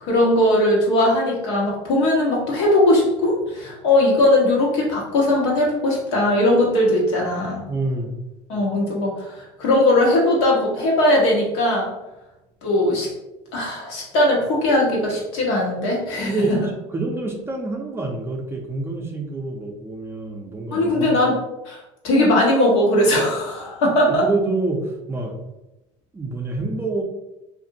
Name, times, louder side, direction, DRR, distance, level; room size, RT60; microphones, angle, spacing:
voice 1, 0.0-7.6 8.5-11.9 12.6-13.1 13.5-16.3 20.7-21.4 21.6-21.8 22.0-24.2, left 1 dB, 90° left, -3 dB, 1.0 m, -19 dB
voice 2, 7.7-8.1 16.3-21.2 24.0-25.4 26.1-27.0, right 2 dB, 15° right, 1 dB, 0.4 m, -27 dB
2.8 x 2.5 x 2.6 m, 0.95 s
supercardioid pair, 115°, 15 cm